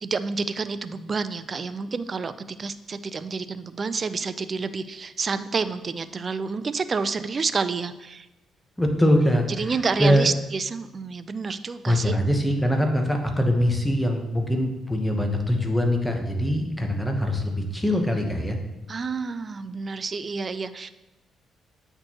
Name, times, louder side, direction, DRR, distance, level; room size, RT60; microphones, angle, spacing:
voice 1, 0.0-2.3 2.6-8.3 9.5-12.2 18.9-20.9, right 4 dB, 40° right, 13 dB, 0.3 m, -29 dB
voice 2, 8.8-10.3 11.9-18.6, equal, 5° left, 3 dB, 1.0 m, -23 dB
8.7 x 4.3 x 3.0 m, 0.98 s
cardioid pair, 90°, 0 cm